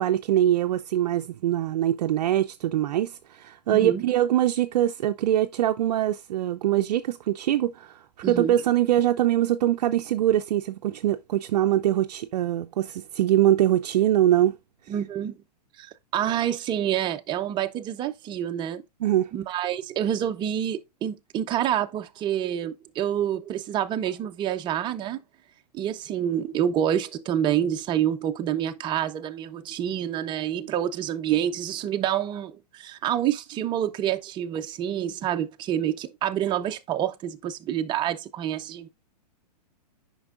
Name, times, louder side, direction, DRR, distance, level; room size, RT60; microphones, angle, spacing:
voice 1, 0.0-14.6 19.0-19.3, right 12 dB, 70° right, 0.5 m, -23 dB
voice 2, 3.7-4.0 8.2-8.5 14.9-15.3 15.8-18.8 19.3-25.2 25.7-38.9, right 10 dB, 20° right, 0.5 m, -27 dB
8.6 x 5.3 x 2.4 m
hypercardioid pair, 125°, 21 cm